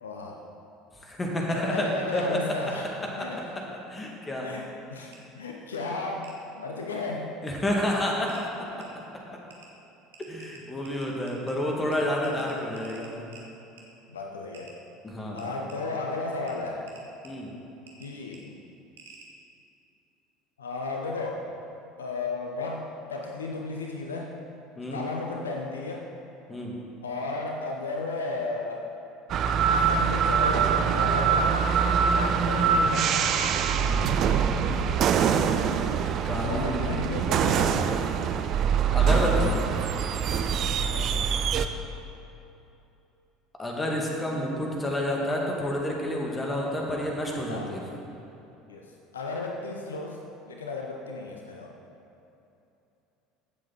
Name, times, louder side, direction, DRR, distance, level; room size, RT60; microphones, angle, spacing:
voice 1, 0.0-0.4 1.5-2.9 3.2-3.4 4.4-7.3 12.2-12.4 14.1-14.7 15.3-16.9 18.0-18.6 20.6-21.5 22.0-24.3 24.9-26.1 27.0-28.9 29.7-33.6 36.4-38.1 40.9-41.1 47.5-47.7 48.7-50.2 50.5-51.7, left 3 dB, 75° left, 1 dB, 0.8 m, -34 dB
voice 2, 1.0-2.4 3.0-3.3 3.9-4.5 7.4-8.7 10.3-13.3 15.0-15.4 17.2-17.5 24.8-25.0 26.5-26.7 36.2-37.1 38.9-39.6 43.6-47.8, left 1 dB, 20° left, -1 dB, 2.2 m, -29 dB
sound 1, 5.1-5.2 6.2-6.4 7.7-7.8 8.3-8.4 8.8-8.9 9.5-9.7 10.1-11.5 11.9-12.0 12.2-13.4 13.8-13.9 14.5-14.7 15.4-15.8 16.5-16.6 16.9-17.3 17.9-18.1 18.3-18.4 19.0-19.3, right 5 dB, 70° right, 1.5 m, -50 dB
sound 2, 29.3-41.7, right 7 dB, 45° right, 0.5 m, -24 dB
15.5 x 7.6 x 4.1 m, 2.9 s
figure-of-eight pair, 65°, 0 cm